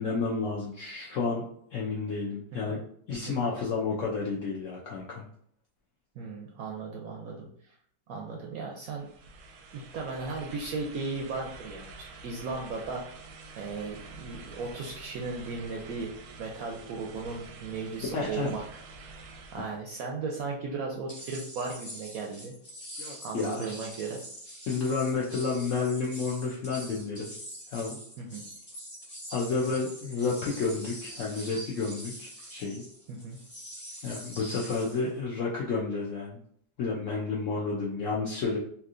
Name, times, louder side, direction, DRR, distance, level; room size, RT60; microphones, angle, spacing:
voice 1, 0.0-1.4 1.7-2.8 3.1-5.3 18.1-18.5 23.0-23.8 24.7-27.3 27.7-28.0 29.3-32.8 34.0-36.4 36.8-38.6, left 4 dB, 80° left, -3 dB, 0.7 m, -31 dB
voice 2, 6.2-7.7 8.1-9.1 9.7-13.0 13.6-16.1 16.4-18.6 19.0-19.2 19.5-22.5 23.2-24.2 28.2-28.4 33.1-33.4, right 4 dB, 70° right, 0 dB, 0.8 m, -36 dB
sound 1, 8.9-19.8, right 3 dB, 90° right, 1.3 m, -48 dB
sound 2, 21.1-35.1, equal, 15° left, 1.0 m, -44 dB
3.4 x 2.8 x 2.4 m, 0.64 s
omnidirectional pair, 1.9 m